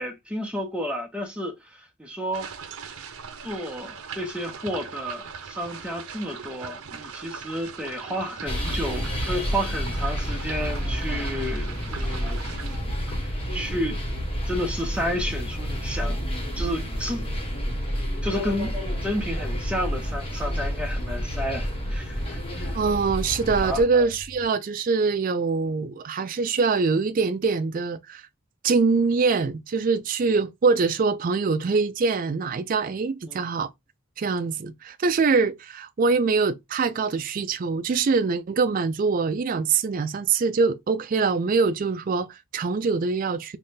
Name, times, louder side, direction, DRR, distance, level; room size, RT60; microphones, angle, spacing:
voice 1, 0.0-2.5 3.4-12.4 13.2-14.0 14.5-16.2 16.6-17.3 18.2-22.8 23.6-24.1 33.3-33.4, equal, 5° right, 0.6 m, -31 dB
sound 1, 2.3-12.8, right 6 dB, 80° right, 0.6 m, -40 dB
sound 2, 8.5-23.8, equal, 25° left, 0.9 m, -29 dB
sound 3, 19.2-24.5, equal, 65° left, 0.9 m, -44 dB
voice 2, 22.7-28.2 28.6-33.7 34.2-43.6, right 4 dB, 40° right, 0.3 m, -24 dB
3.3 x 2.1 x 4.2 m
head